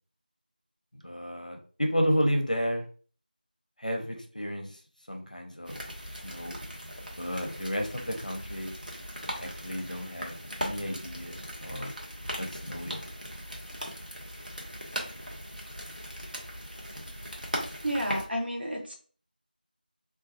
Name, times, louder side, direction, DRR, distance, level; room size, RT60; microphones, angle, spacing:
voice 1, 1.0-2.8 3.8-4.7 5.1-5.8 6.2-6.6 7.2-8.7 9.4-11.9 12.4-13.0, equal, 50° left, 3 dB, 0.6 m, -32 dB
sound 1, 5.6-18.3, equal, 55° right, 0.8 m, -39 dB
voice 2, 17.8-18.9, equal, 85° right, 0 dB, 1.0 m, -31 dB
3.0 x 2.3 x 2.7 m, 0.42 s
figure-of-eight pair, 180°, 5 cm